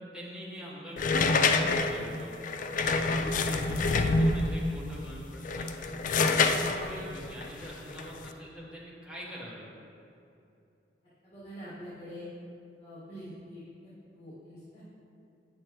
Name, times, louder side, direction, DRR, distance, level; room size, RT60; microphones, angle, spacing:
voice 1, 0.1-2.4 2.7-6.0 6.4-9.6, equal, 5° right, -7 dB, 1.2 m, -44 dB
sound 1, 1.0-4.6 5.3-8.3, left 3 dB, 45° left, 0.3 m, -27 dB
voice 2, 11.2-12.2 12.8-13.6 14.1-14.8, equal, 30° left, -11 dB, 1.8 m, -45 dB
8.6 x 6.4 x 3.0 m, 2.7 s
head